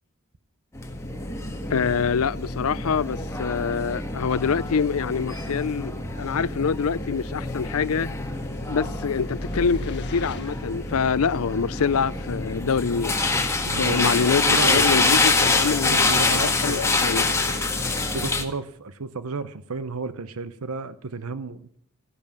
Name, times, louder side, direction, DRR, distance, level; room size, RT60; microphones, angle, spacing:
sound 1, 0.8-18.4, left 3 dB, 15° left, 1.7 m, -26 dB
voice 1, 1.7-8.1 8.7-13.2 13.7-14.4 14.7-17.3, left 6 dB, 70° left, 0.5 m, -25 dB
sound 2, 8.2-10.8, left 1 dB, 50° left, 1.4 m, -40 dB
voice 2, 13.7-15.0 15.9-16.9 18.1-21.8, right 4 dB, 70° right, 0.8 m, -32 dB
14.5 x 10.5 x 7.2 m
head